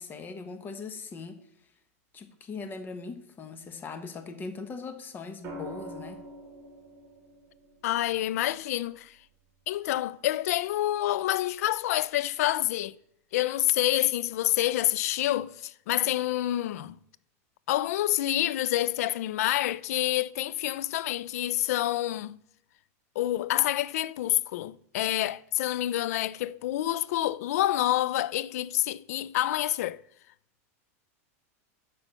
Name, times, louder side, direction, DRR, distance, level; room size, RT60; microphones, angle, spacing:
voice 1, 0.0-1.4 2.1-6.2, left 4 dB, 25° left, 1.0 m, -40 dB
sound 1, 5.4-9.6 11.3-11.6, right 1 dB, 30° right, 2.3 m, -46 dB
voice 2, 7.8-9.2 9.7-12.9 13.3-16.9 17.7-22.4 23.2-30.0, left 14 dB, 75° left, 0.3 m, -27 dB
6.0 x 5.7 x 6.8 m
supercardioid pair, 125°, 8 cm